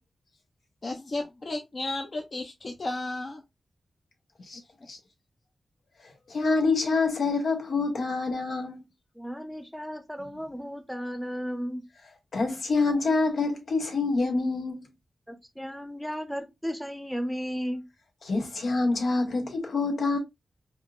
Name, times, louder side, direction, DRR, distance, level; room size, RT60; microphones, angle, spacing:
voice 1, 0.8-3.4, left 2 dB, 45° left, 0.6 m, -33 dB
voice 2, 6.3-8.8 12.3-14.8 18.3-20.2, left 3 dB, 85° left, 1.2 m, -26 dB
voice 3, 9.1-11.8 15.3-17.8, equal, ahead, 0.6 m, -34 dB
5.4 x 2.0 x 2.4 m
wide cardioid pair, 105°, 0 cm